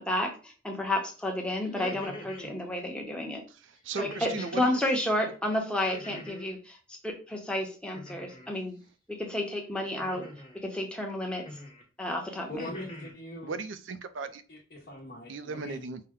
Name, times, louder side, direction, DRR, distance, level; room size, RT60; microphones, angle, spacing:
voice 1, 0.0-3.4 4.0-8.8 9.1-10.3 10.5-11.4 12.0-12.6, left 1 dB, 5° left, 0.8 m, -31 dB
sound 1, 1.6-2.5 3.9-4.6 5.9-6.6 7.9-8.5 9.9-10.6 11.4-11.8 12.3-13.1, equal, 25° left, 1.1 m, -43 dB
voice 2, 3.6-4.8 13.4-14.4 15.3-16.0, right 4 dB, 70° right, 0.5 m, -37 dB
voice 3, 12.5-13.6 14.5-15.9, left 1 dB, 50° left, 0.9 m, -42 dB
5.6 x 2.1 x 3.5 m
head